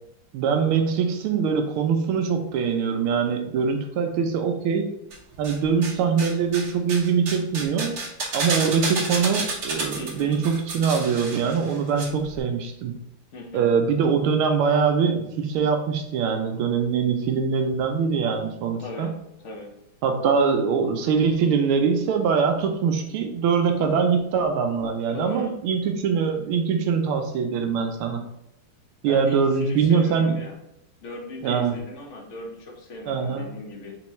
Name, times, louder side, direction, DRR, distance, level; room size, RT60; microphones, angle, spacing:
voice 1, 0.3-4.9 5.4-8.0 8.3-12.9 13.5-19.1 20.0-28.2 29.0-30.4 31.4-31.7 33.1-33.5, right 6 dB, 80° right, 4 dB, 1.5 m, -23 dB
sound 1, 5.1-5.9 6.2-12.1 12.3-12.4, right 3 dB, 60° right, 0.8 m, -30 dB
voice 2, 10.0-10.4 13.3-13.7 18.8-19.1 19.4-19.7 25.1-25.5 29.0-30.6 31.0-33.9, left 2 dB, 65° left, -1 dB, 0.7 m, -38 dB
4.3 x 3.8 x 3.1 m, 0.81 s
omnidirectional pair, 2.4 m